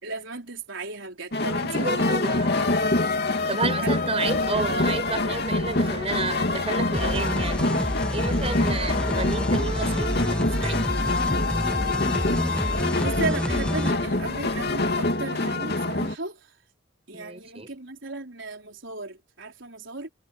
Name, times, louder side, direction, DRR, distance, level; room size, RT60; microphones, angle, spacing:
voice 1, 0.0-2.8 3.4-3.9 4.5-4.6 11.7-11.8 13.0-16.5 17.1-20.1, right 3 dB, 70° right, 4.4 m, -35 dB
sound 1, 1.3-16.2, left 2 dB, 55° left, 2.7 m, -25 dB
voice 2, 1.7-2.6 3.5-7.8 8.1-10.9 17.1-17.7, right 3 dB, 30° right, 5.4 m, -31 dB
sound 2, 4.3-15.0, equal, 25° left, 5.1 m, -43 dB
sound 3, 6.9-13.9, equal, 5° left, 1.0 m, -28 dB
head